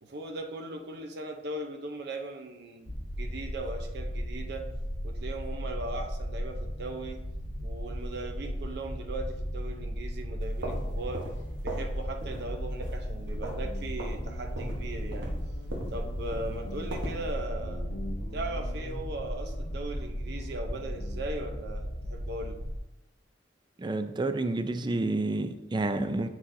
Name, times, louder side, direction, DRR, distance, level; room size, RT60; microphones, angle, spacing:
voice 1, 0.0-4.7 5.0-7.2 7.6-11.3 11.6-15.3 15.9-17.9 18.3-22.6, right 2 dB, 65° right, 4 dB, 0.7 m, -38 dB
sound 1, 2.8-22.8, equal, 25° left, 0.8 m, -36 dB
sound 2, 10.4-12.0 12.2-12.5 12.8-13.7 14.0-14.2 14.6-17.3, right 1 dB, 85° right, 1.2 m, -39 dB
Guitar, 13.0-21.5, equal, 80° left, 1.4 m, -47 dB
voice 2, 23.8-26.3, right 2 dB, 25° right, 9 dB, 0.4 m, -29 dB
7.7 x 6.2 x 2.7 m, 0.95 s
head